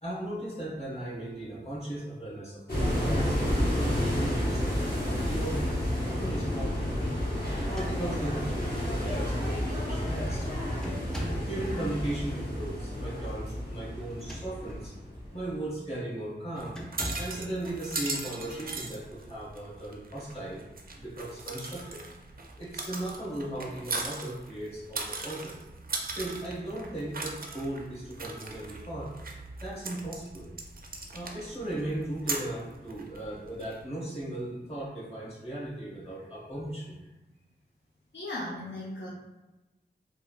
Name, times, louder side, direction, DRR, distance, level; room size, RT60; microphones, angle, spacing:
voice 1, 0.0-7.3 7.7-10.5 10.8-11.0 11.5-14.9 15.3-16.8 17.2-20.6 21.0-22.0 22.6-25.6 26.1-29.1 29.6-30.5 31.1-37.1, right 1 dB, 35° left, -7 dB, 1.2 m, -37 dB
sound 1, 2.7-15.5, equal, 55° left, 0.9 m, -30 dB
sound 2, 7.6-8.5 9.3-9.4 9.8-10.2 10.8-11.6 14.0-14.9 15.4-15.6 16.7-17.4, equal, 5° left, 0.4 m, -41 dB
sound 3, 16.6-33.8, right 3 dB, 55° right, 0.4 m, -39 dB
voice 2, 38.1-39.1, left 1 dB, 75° left, -6 dB, 0.5 m, -36 dB
3.3 x 2.3 x 2.4 m, 1.1 s
wide cardioid pair, 65°, 19 cm